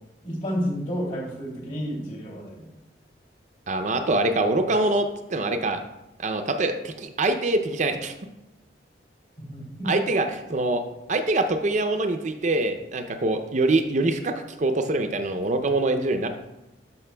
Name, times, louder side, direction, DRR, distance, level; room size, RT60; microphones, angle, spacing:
voice 1, 0.2-2.7 9.4-9.9, equal, 45° left, -2 dB, 2.7 m, -31 dB
voice 2, 3.7-5.8 6.2-8.1 9.9-10.8 11.1-16.3, right 2 dB, 40° right, 7 dB, 0.5 m, -24 dB
12.5 x 5.6 x 2.2 m, 0.94 s
head